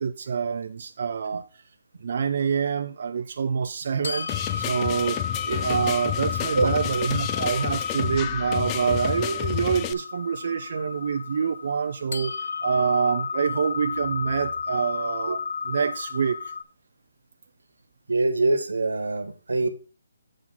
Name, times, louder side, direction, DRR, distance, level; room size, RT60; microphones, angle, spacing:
voice 1, 0.0-1.6 2.0-5.2 5.4-12.4 12.6-16.5, right 6 dB, 55° right, 0.5 m, -26 dB
sound 1, 4.0-16.6, left 5 dB, 70° left, 0.6 m, -32 dB
sound 2, 4.3-9.9, left 13 dB, 20° left, 0.4 m, -30 dB
voice 2, 18.1-19.7, right 3 dB, 90° right, 1.4 m, -24 dB
7.5 x 3.8 x 6.1 m
hypercardioid pair, 155°, 0 cm